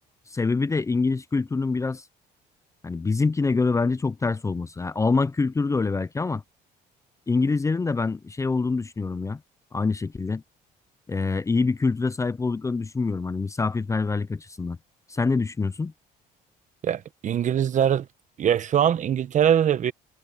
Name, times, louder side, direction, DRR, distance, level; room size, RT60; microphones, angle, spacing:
voice 1, 0.3-2.0 2.8-6.4 7.3-9.4 9.7-10.4 11.1-14.8 15.1-15.9, left 4 dB, 20° left, 0.6 m, -25 dB
voice 2, 16.8-18.1 18.4-19.9, right 9 dB, 45° right, 1.0 m, -22 dB
cardioid pair, 110°, 17 cm